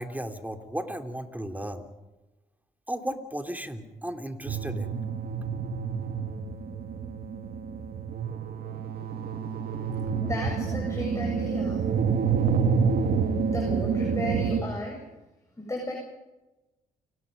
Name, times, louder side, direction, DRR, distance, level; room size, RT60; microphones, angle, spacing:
voice 1, 0.0-1.8 2.9-5.0, right 1 dB, 10° right, 6 dB, 3.2 m, -35 dB
sound 1, 4.5-14.6, right 6 dB, 65° right, 2.3 m, -28 dB
voice 2, 10.2-11.8 13.4-15.0 15.6-15.9, left 1 dB, 15° left, 0 dB, 7.6 m, -34 dB
29.5 x 18.5 x 5.4 m, 1.0 s
supercardioid pair, 50°, 17 cm